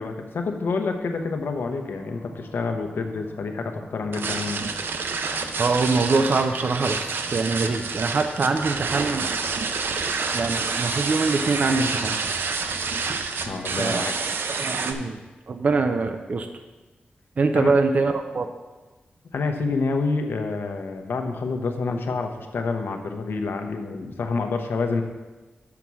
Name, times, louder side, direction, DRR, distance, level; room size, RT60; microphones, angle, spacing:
voice 1, 0.0-4.6 13.4-14.1 17.6-17.7 19.3-25.0, left 4 dB, 85° left, 5 dB, 0.9 m, -28 dB
sound 1, 1.1-13.8, equal, 5° left, 2.2 m, -45 dB
sound 2, 4.1-14.9, right 4 dB, 85° right, 0.6 m, -28 dB
voice 2, 5.6-7.0 7.3-9.3 10.3-12.2 13.8-14.1 14.6-15.2 15.5-16.5 17.4-18.5, right 3 dB, 45° right, 7 dB, 0.5 m, -23 dB
7.0 x 5.9 x 6.2 m, 1.2 s
wide cardioid pair, 180°, 4 cm